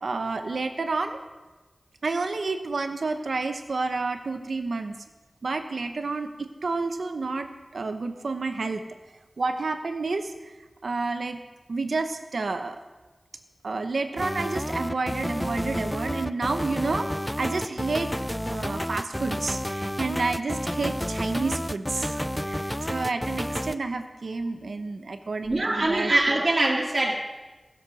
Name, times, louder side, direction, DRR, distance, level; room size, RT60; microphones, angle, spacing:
voice 1, 0.0-1.2 2.0-5.0 5.4-7.5 7.7-8.8 9.4-10.5 10.8-11.4 11.7-12.8 13.6-17.1 17.4-18.1 18.5-26.1 26.4-26.5, right 3 dB, 90° right, 7 dB, 0.9 m, -30 dB
sound 1, 14.2-23.8, equal, 5° left, 0.4 m, -30 dB
voice 2, 25.4-27.1, right 2 dB, 50° right, -2 dB, 2.0 m, -23 dB
16.0 x 6.4 x 6.3 m, 1.2 s
wide cardioid pair, 45°, 0 cm